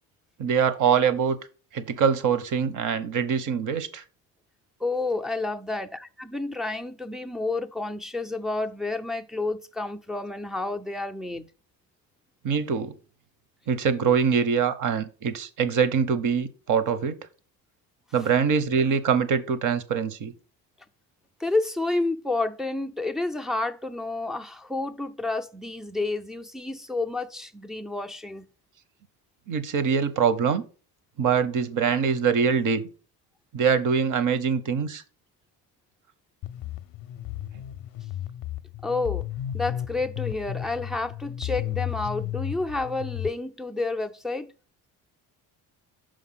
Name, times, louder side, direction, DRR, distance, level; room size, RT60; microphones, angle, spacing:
voice 1, 0.4-1.4 1.7-4.0 12.4-12.9 13.7-17.2 18.1-20.3 29.5-30.6 31.2-32.8 33.5-35.0, right 6 dB, 50° right, 0.9 m, -24 dB
voice 2, 4.8-11.5 21.4-28.5 38.8-39.3 39.5-44.5, left 2 dB, ahead, 0.3 m, -30 dB
sound 1, 36.4-43.3, left 12 dB, 60° left, 0.5 m, -33 dB
5.9 x 5.0 x 5.7 m
cardioid pair, 130°, 40 cm